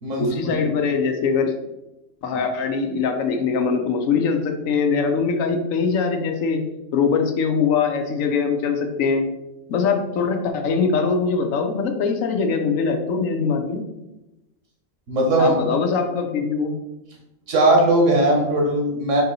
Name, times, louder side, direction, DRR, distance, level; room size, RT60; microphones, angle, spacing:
voice 1, 0.2-1.5 2.2-6.6 6.9-9.3 9.7-13.8 15.4-16.7, left 5 dB, 85° left, 4 dB, 1.0 m, -22 dB
voice 2, 15.1-15.6 17.5-19.2, right 1 dB, 70° right, 0 dB, 1.4 m, -18 dB
4.4 x 2.7 x 4.1 m, 0.96 s
omnidirectional pair, 1.4 m